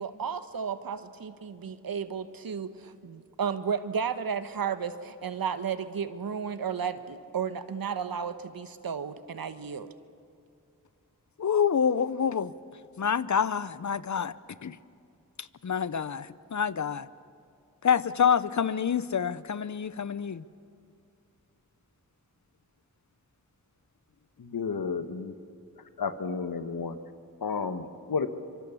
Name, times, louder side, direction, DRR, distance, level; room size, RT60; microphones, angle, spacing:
voice 1, 0.0-9.9, right 7 dB, 75° right, 11 dB, 1.2 m, -33 dB
voice 2, 11.4-12.5 13.0-14.3 14.6-14.8 15.4-17.1 17.8-20.4, left 7 dB, 55° left, 17 dB, 0.8 m, -27 dB
voice 3, 24.4-25.3 26.0-27.0 27.4-28.3, left 5 dB, 75° left, 10 dB, 1.3 m, -32 dB
25.0 x 23.5 x 7.1 m, 2.4 s
cardioid pair, 40°, 36 cm